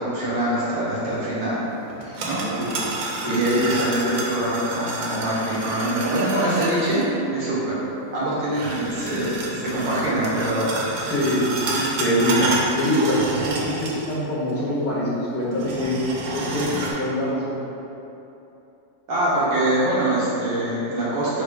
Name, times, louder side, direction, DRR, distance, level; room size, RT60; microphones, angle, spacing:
voice 1, 0.0-1.6 2.2-2.4 3.3-7.0 7.3-7.8 8.1-10.7 19.1-21.4, right 1 dB, 90° right, -8 dB, 1.7 m, -24 dB
voice 2, 1.9-2.9 3.2-3.4 11.1-16.0 16.3-16.7 17.0-17.6, equal, 15° left, -10 dB, 0.5 m, -24 dB
sound 1, 1.9-7.0 8.5-14.2 14.5-14.6 15.5-16.9, right 2 dB, 70° right, 1.1 m, -30 dB
4.8 x 2.1 x 4.7 m, 2.9 s
omnidirectional pair, 2.1 m